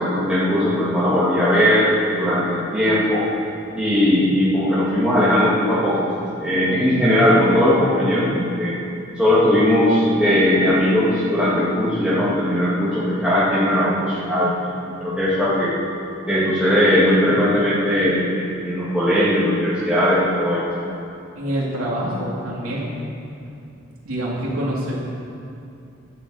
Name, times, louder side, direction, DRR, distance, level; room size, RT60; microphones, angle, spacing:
voice 1, 0.0-3.2 3.7-6.1 6.4-8.7 9.2-14.5 15.0-15.7 16.3-20.6, left 1 dB, 5° right, -10 dB, 2.1 m, -18 dB
voice 2, 21.4-22.9 24.0-25.0, right 1 dB, 85° right, -5 dB, 2.8 m, -26 dB
12.0 x 11.0 x 7.7 m, 2.6 s
head